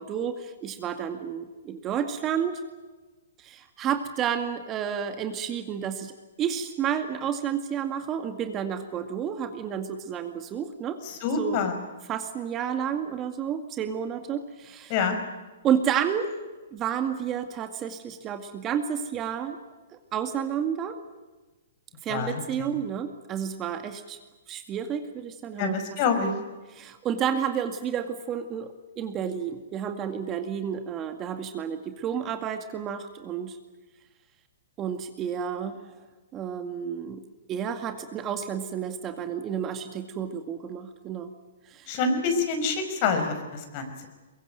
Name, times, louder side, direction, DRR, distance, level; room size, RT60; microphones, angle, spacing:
voice 1, 0.0-2.6 3.4-11.0 11.4-11.6 12.1-15.0 15.6-16.3 16.7-19.6 20.1-21.0 22.0-24.2 24.5-26.4 26.7-33.6 34.8-35.8 36.3-37.2 37.5-41.3 41.7-42.0, right 8 dB, 25° right, 7 dB, 2.1 m, -31 dB
voice 2, 11.0-11.8 14.9-15.2 22.1-22.7 25.6-26.3 41.9-44.1, left 5 dB, 45° left, 7 dB, 5.4 m, -27 dB
22.5 x 22.5 x 9.3 m, 1.2 s
hypercardioid pair, 125°, 0 cm